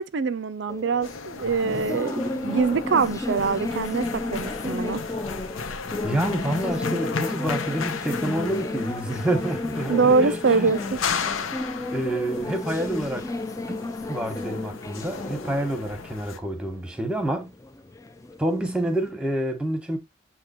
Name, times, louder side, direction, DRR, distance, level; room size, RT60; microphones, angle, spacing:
voice 1, 0.0-5.0 9.9-11.0, right 4 dB, 60° right, 0.4 m, -24 dB
sound 1, 0.7-19.1, left 2 dB, 15° left, 0.4 m, -33 dB
sound 2, 1.0-16.4, left 5 dB, 85° left, 0.9 m, -35 dB
voice 2, 6.0-10.7 11.9-13.3 13.7-17.5 18.4-20.0, right 1 dB, 5° right, 1.2 m, -28 dB
7.5 x 2.9 x 4.3 m
head